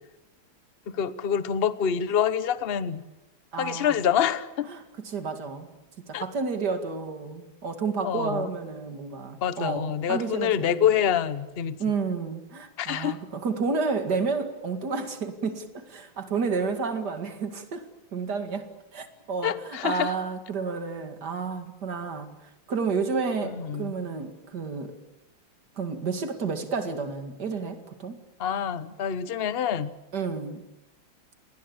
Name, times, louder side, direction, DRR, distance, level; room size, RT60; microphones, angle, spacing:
voice 1, 0.9-3.0 3.6-4.7 6.1-6.2 8.0-8.5 9.4-11.8 12.8-13.2 19.4-20.1 23.6-23.9 28.4-29.9, left 8 dB, 45° left, 15 dB, 0.8 m, -26 dB
voice 2, 3.5-4.1 4.6-5.7 6.1-10.8 11.8-17.8 18.1-22.3 22.7-25.0 25.8-28.2 30.1-30.6, right 4 dB, 50° right, 8 dB, 2.7 m, -31 dB
29.0 x 20.0 x 8.6 m, 0.97 s
omnidirectional pair, 2.4 m